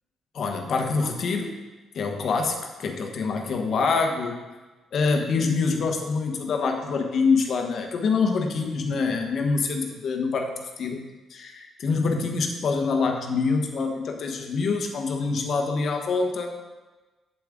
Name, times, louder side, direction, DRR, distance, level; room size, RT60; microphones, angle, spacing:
voice 1, 0.3-1.5 1.9-2.6 2.8-4.4 4.9-11.0 11.3-16.5, left 4 dB, 60° left, 4 dB, 1.2 m, -25 dB
8.2 x 7.6 x 3.8 m, 1.2 s
cardioid pair, 90°, 0 cm